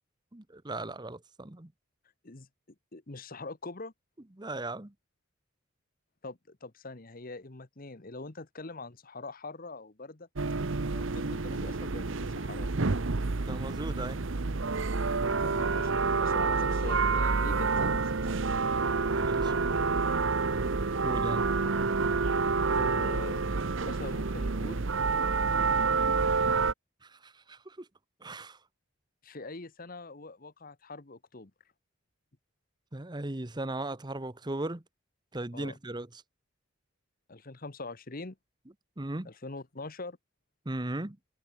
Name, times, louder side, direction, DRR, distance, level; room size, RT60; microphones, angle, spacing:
voice 1, 0.3-1.7 4.4-4.9 13.5-14.2 19.1-19.5 21.0-21.5 27.0-27.9 28.2-28.6 32.9-34.8 35.3-36.1 39.0-39.3 40.6-41.2, right 2 dB, 20° right, 1.0 m, -37 dB
voice 2, 2.9-3.9 6.2-10.3 10.9-12.7 15.2-18.3 22.3-22.4 22.7-23.4 23.8-24.9 29.2-31.5 35.5-35.8 37.3-38.4 39.2-40.2, left 3 dB, 40° left, 1.2 m, -43 dB
sound 1, 10.4-26.7, right 4 dB, 60° right, 0.9 m, -28 dB
head